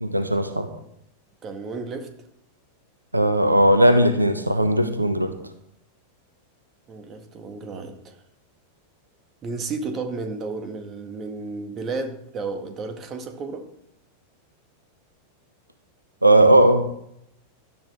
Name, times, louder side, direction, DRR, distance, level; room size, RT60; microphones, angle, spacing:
voice 1, 0.0-0.7 3.1-5.3 16.2-16.8, right 1 dB, 85° right, 9 dB, 1.2 m, -17 dB
voice 2, 1.4-2.1 6.9-8.2 9.4-13.7, right 3 dB, 30° right, 6 dB, 2.0 m, -32 dB
17.0 x 12.5 x 3.7 m, 0.75 s
figure-of-eight pair, 90°, 0 cm